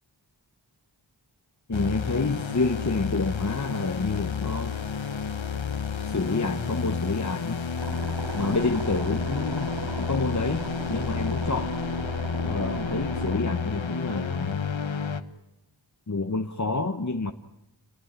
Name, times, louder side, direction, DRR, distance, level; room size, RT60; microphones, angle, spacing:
sound 1, 1.7-15.2, left 5 dB, 85° left, 1.3 m, -31 dB
voice 1, 1.7-4.8 6.0-7.6 8.3-11.8 12.4-14.7 16.1-17.3, left 3 dB, 40° left, 7 dB, 1.2 m, -28 dB
sound 2, 7.8-13.4, right 2 dB, 65° right, 3.5 m, -36 dB
27.5 x 19.0 x 8.9 m, 0.88 s
wide cardioid pair, 40°, 45 cm